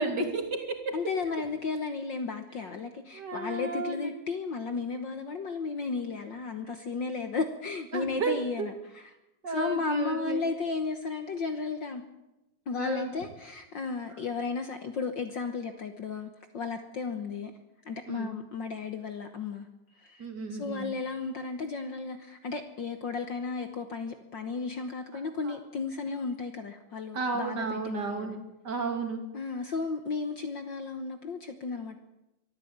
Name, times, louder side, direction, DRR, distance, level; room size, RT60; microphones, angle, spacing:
voice 1, 0.0-0.9 3.1-4.1 7.9-8.7 9.4-10.4 12.8-13.1 18.1-18.3 20.2-20.9 25.4-25.5 27.1-28.4 28.6-29.2, right 3 dB, 35° right, 4 dB, 3.0 m, -32 dB
voice 2, 0.9-9.1 9.5-12.0 12.7-17.5 17.8-19.7 20.0-20.2 20.6-28.4 29.3-32.0, left 4 dB, 75° left, 8 dB, 1.0 m, -34 dB
23.5 x 13.5 x 8.7 m, 0.95 s
omnidirectional pair, 3.8 m